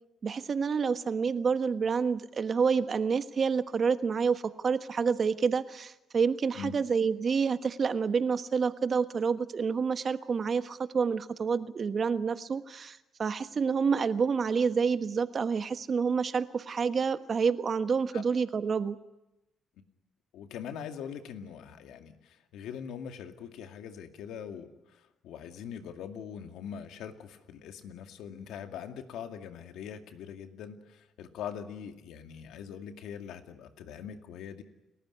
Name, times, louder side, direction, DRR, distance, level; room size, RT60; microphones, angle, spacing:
voice 1, 0.2-19.0, right 5 dB, 45° right, 11 dB, 1.3 m, -28 dB
voice 2, 20.3-34.6, left 8 dB, 85° left, 6 dB, 2.2 m, -42 dB
30.0 x 14.5 x 9.9 m, 0.95 s
cardioid pair, 90°, 0 cm